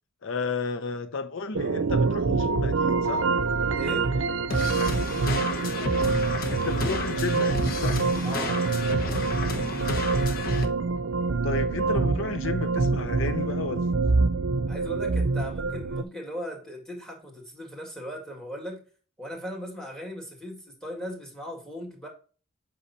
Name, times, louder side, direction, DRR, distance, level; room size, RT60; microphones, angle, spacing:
voice 1, 0.2-3.3 6.5-8.0 11.4-13.8, left 4 dB, 65° left, 0.6 m, -32 dB
sound 1, 1.5-16.0, right 4 dB, 70° right, 0.6 m, -26 dB
voice 2, 3.7-4.1 8.2-8.6 14.7-18.8 19.2-22.1, equal, 5° left, 2.1 m, -38 dB
sound 2, 4.5-10.7, left 2 dB, 45° left, 1.2 m, -31 dB
8.3 x 5.5 x 2.7 m
head